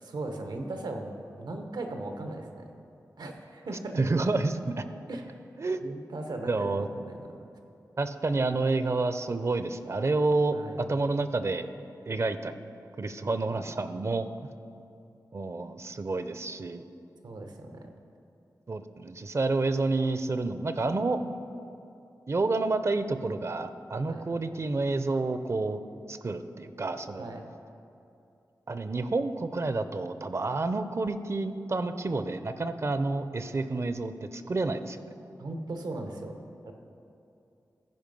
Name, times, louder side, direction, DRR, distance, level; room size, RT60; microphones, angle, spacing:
voice 1, 0.0-2.7 3.2-4.0 5.1-5.3 5.8-7.4 10.5-10.8 17.2-17.9 24.1-24.3 27.2-27.5 35.4-36.7, right 2 dB, 85° right, 4 dB, 1.0 m, -38 dB
voice 2, 4.0-4.8 5.6-5.8 6.5-6.9 8.0-11.7 12.1-12.5 13.0-14.3 15.3-16.8 18.7-21.2 22.3-25.8 26.1-27.3 28.7-35.0, right 3 dB, 45° right, 10 dB, 0.5 m, -29 dB
14.5 x 5.2 x 5.3 m, 2.7 s
wide cardioid pair, 75°, 7 cm